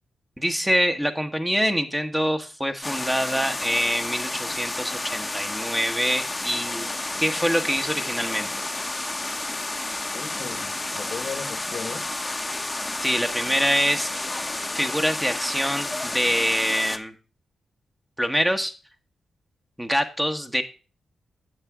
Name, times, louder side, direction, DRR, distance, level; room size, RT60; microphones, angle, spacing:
voice 1, 0.4-6.9 7.2-8.5 13.0-14.1 14.7-17.1 18.2-18.7 19.8-20.6, equal, 10° right, 1.2 m, -25 dB
sound 1, 2.8-17.0, left 2 dB, 20° left, 0.9 m, -31 dB
voice 2, 10.1-12.2, left 5 dB, 65° left, 1.1 m, -36 dB
8.9 x 6.8 x 3.6 m
supercardioid pair, 50°, 0 cm